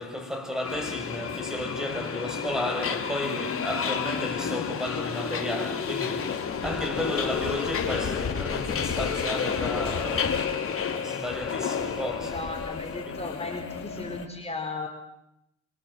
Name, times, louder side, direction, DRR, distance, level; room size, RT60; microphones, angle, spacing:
voice 1, 0.0-12.5 13.1-13.2, left 1 dB, ahead, 6.2 m, -33 dB
Subway metro underground, 0.6-14.3, left 6 dB, 45° left, 3.5 m, -31 dB
voice 2, 12.2-14.9, left 3 dB, 20° left, 4.3 m, -35 dB
27.0 x 24.0 x 7.7 m
cardioid pair, 90°, 30 cm